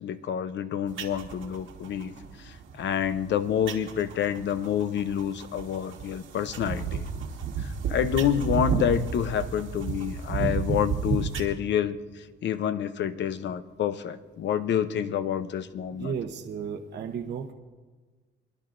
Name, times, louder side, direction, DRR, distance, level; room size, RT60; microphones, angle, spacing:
voice 1, 0.0-2.1 2.4-7.1 7.6-16.1, left 9 dB, 65° left, 13 dB, 0.7 m, -28 dB
sound 1, 0.9-11.4, right 5 dB, 80° right, 1.6 m, -32 dB
voice 2, 15.9-17.5, right 7 dB, 60° right, 2 dB, 0.9 m, -34 dB
24.5 x 11.0 x 2.6 m, 1.3 s
cardioid pair, 90°, 20 cm